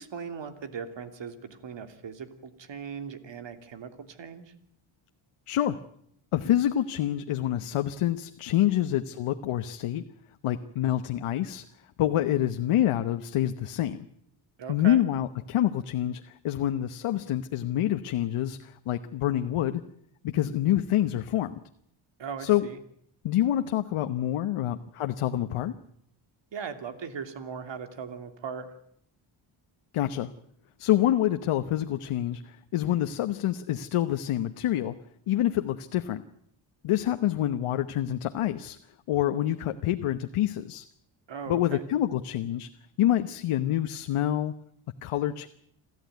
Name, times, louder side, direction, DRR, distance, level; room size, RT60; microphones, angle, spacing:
voice 1, 0.0-4.5 14.6-15.0 22.2-22.8 26.5-28.7 41.3-41.8, right 6 dB, 60° right, 9 dB, 2.9 m, -39 dB
voice 2, 6.3-10.0 10.4-11.6 12.0-14.1 14.7-19.8 20.2-21.5 22.4-22.7 23.2-25.7 29.9-30.3 30.8-32.4 32.7-34.9 35.3-36.2 36.8-38.8 39.1-40.8 41.5-42.7 43.0-44.5 45.0-45.5, left 12 dB, 85° left, 8 dB, 1.1 m, -27 dB
27.5 x 14.0 x 9.3 m, 0.70 s
cardioid pair, 95°, 50 cm